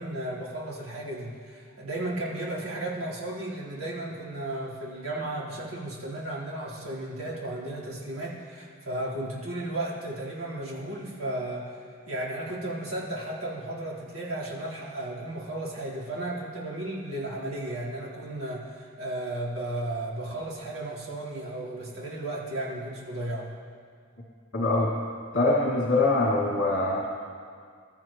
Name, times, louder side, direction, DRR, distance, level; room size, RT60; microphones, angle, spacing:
voice 1, 0.0-23.5, right 1 dB, 75° right, -6 dB, 4.0 m, -34 dB
voice 2, 24.5-24.9 25.3-27.1, left 2 dB, 60° left, -6 dB, 2.6 m, -23 dB
27.0 x 13.5 x 3.1 m, 2.1 s
head